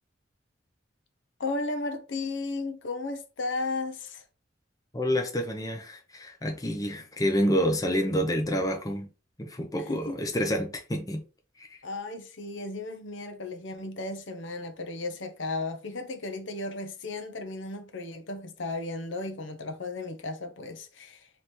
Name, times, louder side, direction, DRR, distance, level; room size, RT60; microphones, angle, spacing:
voice 1, 1.4-4.2 9.9-10.2 11.8-21.3, left 2 dB, 70° left, 0.7 m, -34 dB
voice 2, 4.9-9.1 9.4-11.2 11.6-11.8, equal, 20° left, 0.7 m, -28 dB
3.3 x 3.0 x 4.3 m
head